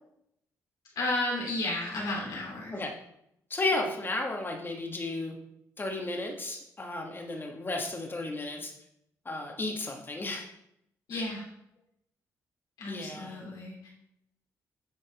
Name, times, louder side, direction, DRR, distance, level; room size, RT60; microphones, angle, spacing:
voice 1, 0.9-2.8 11.1-11.5 12.8-13.9, left 2 dB, 80° left, -4 dB, 2.8 m, -33 dB
voice 2, 3.5-5.4 5.8-8.7 9.2-10.5 11.1-11.3 12.9-13.4, left 2 dB, 30° left, 2 dB, 1.5 m, -33 dB
10.0 x 4.0 x 3.5 m, 0.78 s
supercardioid pair, 65°, 7 cm